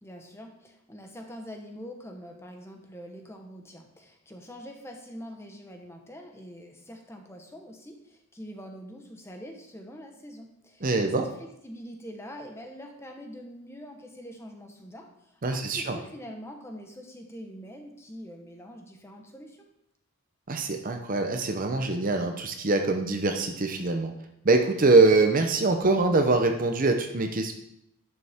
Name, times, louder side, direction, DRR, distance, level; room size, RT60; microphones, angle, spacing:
voice 1, 0.0-19.7, equal, 10° left, 2 dB, 1.1 m, -44 dB
voice 2, 10.8-11.3 15.4-16.0 20.5-24.1 24.4-27.5, right 3 dB, 40° right, 5 dB, 0.7 m, -23 dB
11.0 x 6.9 x 3.6 m, 0.78 s
head